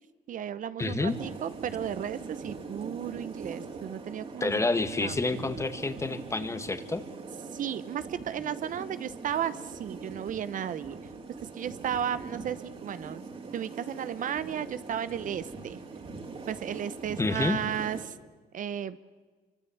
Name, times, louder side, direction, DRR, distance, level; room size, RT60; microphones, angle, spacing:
voice 1, 0.3-4.7 5.0-5.3 7.5-11.0 11.4-13.2 13.5-15.8 16.5-18.1 18.5-19.0, right 9 dB, 50° right, 14 dB, 1.0 m, -34 dB
voice 2, 0.8-1.2 4.4-7.0 17.2-17.6, left 3 dB, 15° left, 10 dB, 1.8 m, -28 dB
sound 1, 1.1-18.1, right 4 dB, 35° right, 3.8 m, -42 dB
25.5 x 25.0 x 8.7 m, 1.4 s
cardioid pair, 110°, 17 cm